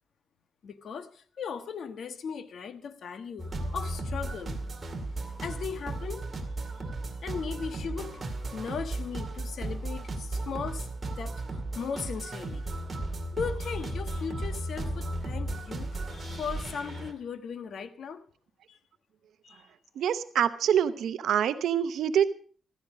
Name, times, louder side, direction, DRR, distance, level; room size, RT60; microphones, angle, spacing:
voice 1, 0.6-4.6 5.4-6.3 7.2-8.2 8.5-10.9 11.2-12.7 13.3-18.2 18.7-18.8 19.4-19.6, left 6 dB, 60° left, 1.3 m, -37 dB
sound 1, 3.4-17.1, right 2 dB, 25° right, 2.2 m, -35 dB
voice 2, 20.0-22.3, right 9 dB, 90° right, 0.7 m, -25 dB
14.5 x 14.0 x 4.9 m
wide cardioid pair, 140°, 0 cm